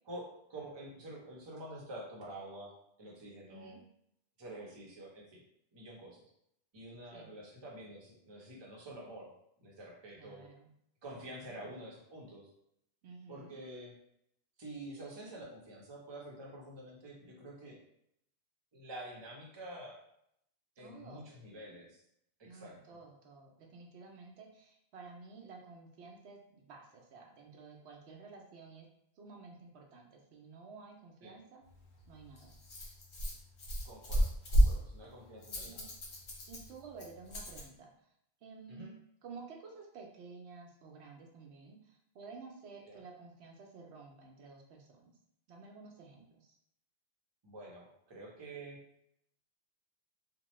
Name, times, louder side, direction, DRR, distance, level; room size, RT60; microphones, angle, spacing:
voice 1, 0.1-2.7 3.0-3.7 4.4-5.4 5.7-6.2 6.7-9.3 9.6-10.5 11.0-12.5 13.3-13.9 14.6-17.8 18.7-20.0 20.8-22.0 22.4-23.0 31.2-31.3 33.8-35.9 38.7-38.9 42.9-43.0 47.4-48.8, right 1 dB, 30° right, -3 dB, 0.7 m, -48 dB
voice 2, 3.5-3.8 7.1-7.4 10.1-10.7 11.1-11.7 13.0-13.6 20.8-21.4 22.4-28.9 29.2-31.6 32.1-32.6 35.6-35.9 36.5-37.9 38.4-38.9 39.2-45.1 45.5-46.6, right 4 dB, 80° right, 1 dB, 0.9 m, -52 dB
Rattle, 31.6-37.7, right 1 dB, 85° left, 1.2 m, -33 dB
2.9 x 2.2 x 3.0 m, 0.74 s
omnidirectional pair, 1.1 m